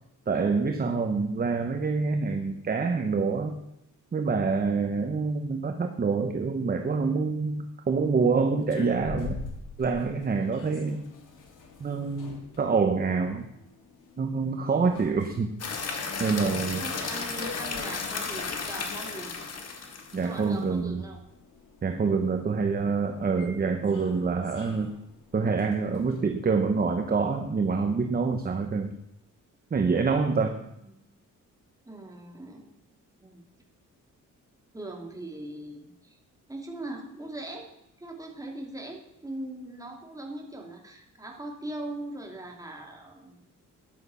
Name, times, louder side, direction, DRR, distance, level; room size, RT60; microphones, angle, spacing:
voice 1, 0.3-3.6 4.1-9.4 9.8-11.0 11.8-13.5 14.2-15.5 16.2-16.9 20.1-21.0 21.8-24.9 25.3-28.9 29.7-30.6, right 4 dB, 30° right, 5 dB, 1.1 m, -26 dB
sound 1, 8.6-26.2, left 4 dB, 70° left, 2.5 m, -47 dB
sound 2, 15.6-20.4, left 4 dB, 50° left, 2.1 m, -34 dB
voice 2, 16.8-19.5 20.2-21.2 30.6-31.1 31.8-32.7 33.2-33.4 34.7-36.2 36.5-37.7 38.0-43.5, right 1 dB, 10° right, 1 dB, 2.6 m, -40 dB
13.5 x 10.5 x 5.7 m, 0.82 s
cardioid pair, 135°, 32 cm